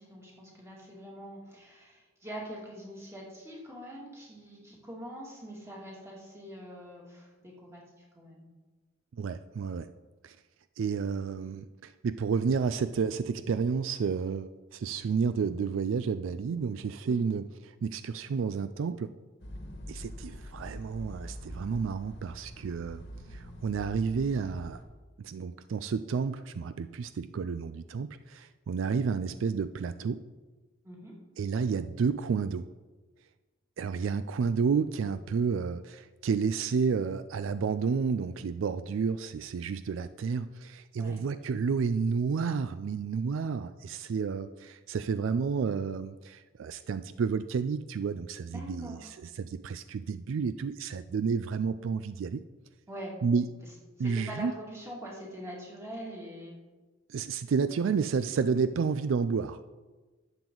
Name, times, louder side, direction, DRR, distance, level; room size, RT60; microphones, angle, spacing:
voice 1, 0.0-8.5 17.0-17.2 30.8-31.2 41.0-41.2 48.5-49.1 52.9-53.2 54.0-56.5, equal, 15° right, -3 dB, 2.3 m, -44 dB
voice 2, 9.2-9.9 10.2-10.4 10.8-19.1 19.9-23.0 23.3-24.8 25.2-30.2 31.4-32.7 33.8-52.4 53.2-53.5 54.0-54.5 57.1-59.7, right 5 dB, 75° right, 12 dB, 0.4 m, -31 dB
sound 1, 19.4-24.8, equal, 60° left, 1.3 m, -44 dB
11.5 x 7.8 x 3.9 m, 1.3 s
head